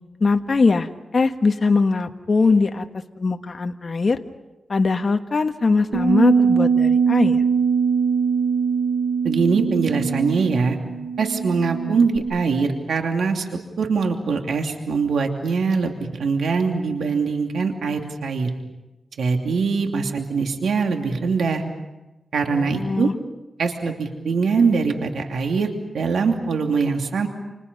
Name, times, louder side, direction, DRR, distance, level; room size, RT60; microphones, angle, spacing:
voice 1, 0.2-4.2 4.7-7.4 22.5-23.1, left 4 dB, 50° left, 5 dB, 1.5 m, -21 dB
Bass guitar, 5.9-12.2, right 6 dB, 55° right, 3.4 m, -21 dB
voice 2, 9.2-10.8 11.2-13.4 13.8-15.9 16.2-18.5 19.2-21.6 22.3-23.1 23.6-25.7 25.9-27.3, right 4 dB, 90° right, 3 dB, 2.8 m, -22 dB
29.5 x 29.0 x 5.5 m, 1.0 s
cardioid pair, 70°, 0 cm